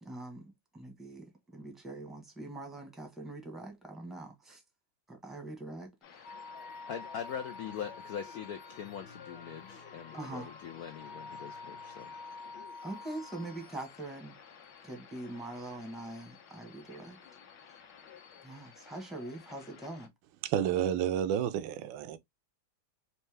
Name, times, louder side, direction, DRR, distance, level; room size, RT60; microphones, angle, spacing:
voice 1, 0.0-4.6 5.1-6.2 10.1-10.5 12.8-14.3 14.8-17.2 18.4-20.1, right 2 dB, ahead, 0.7 m, -43 dB
sound 1, 6.0-20.1, left 7 dB, 65° left, 1.4 m, -54 dB
sound 2, 6.2-14.2, left 3 dB, 45° left, 0.9 m, -48 dB
voice 2, 6.9-12.1, left 8 dB, 80° left, 0.8 m, -42 dB
voice 3, 20.4-22.2, right 10 dB, 75° right, 1.2 m, -30 dB
4.4 x 2.7 x 3.3 m
omnidirectional pair, 2.2 m